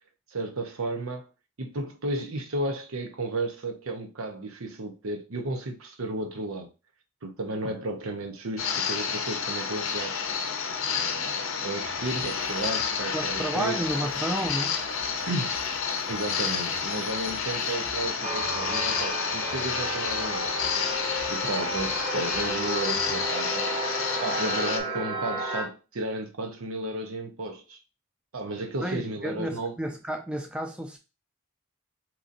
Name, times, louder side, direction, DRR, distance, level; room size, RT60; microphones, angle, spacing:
voice 1, 0.3-1.3 1.6-6.7 7.2-10.2 11.0-13.8 15.3-15.6 16.1-20.6 21.3-23.7 24.2-27.8 28.3-29.7, right 2 dB, 80° right, 0.8 m, -33 dB
sound 1, 8.6-24.8, left 6 dB, 65° left, 0.6 m, -30 dB
sound 2, 11.8-23.3, left 1 dB, 55° right, 1.4 m, -49 dB
voice 2, 13.1-14.8 28.8-31.0, right 1 dB, 5° right, 0.5 m, -31 dB
sound 3, 18.2-25.6, right 2 dB, 30° right, 0.8 m, -33 dB
2.9 x 2.6 x 3.8 m
head